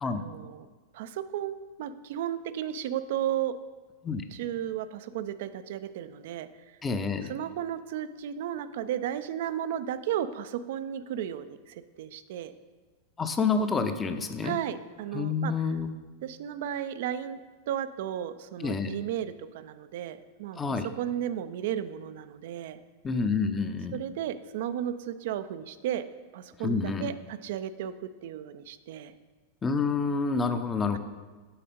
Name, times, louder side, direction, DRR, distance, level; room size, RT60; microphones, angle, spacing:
voice 1, 0.0-0.7 0.9-3.5 4.3-6.8 7.3-12.5 14.4-15.5 16.2-17.4 17.7-20.6 21.0-22.8 23.9-26.0 26.3-29.1, right 10 dB, 55° right, 12 dB, 0.4 m, -34 dB
voice 2, 6.8-7.3 13.2-14.6 15.1-15.9 18.6-18.9 20.6-20.9 23.0-24.0 26.6-27.1 29.6-31.0, left 4 dB, 20° left, 8 dB, 0.6 m, -28 dB
8.7 x 4.1 x 5.2 m, 1.4 s
figure-of-eight pair, 90°, 0 cm